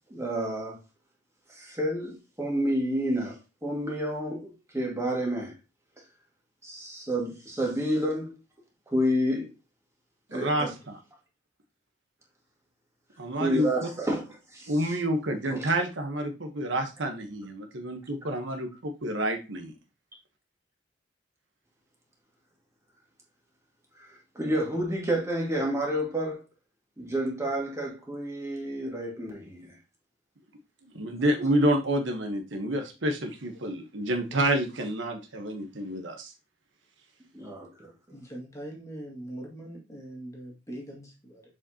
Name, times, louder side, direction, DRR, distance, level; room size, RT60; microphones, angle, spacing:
voice 1, 0.1-0.8 1.6-5.5 6.6-8.4 8.9-9.5 10.3-10.7 13.4-14.2 14.5-14.9 15.4-15.7 24.4-26.4 27.0-29.8 37.3-37.9, equal, 15° right, 1.9 m, -29 dB
voice 2, 10.3-11.0 13.2-13.9 14.7-19.7 30.8-36.3, right 1 dB, 70° right, 1.1 m, -29 dB
voice 3, 38.1-41.4, right 1 dB, 15° left, 2.0 m, -42 dB
7.2 x 4.9 x 2.9 m
head